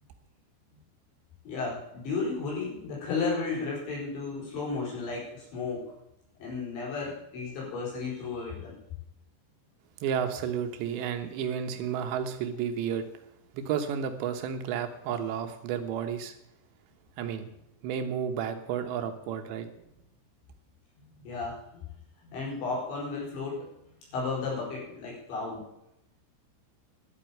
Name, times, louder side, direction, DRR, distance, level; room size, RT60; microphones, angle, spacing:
voice 1, 1.4-5.9 6.4-8.8 21.2-21.8 22.2-23.7 24.1-25.7, left 4 dB, 85° left, -4 dB, 7.2 m, -33 dB
voice 2, 10.0-13.0 13.5-16.4 17.2-17.5 17.8-19.7, right 8 dB, 80° right, 7 dB, 3.4 m, -32 dB
11.5 x 8.4 x 8.9 m, 0.82 s
omnidirectional pair, 5.1 m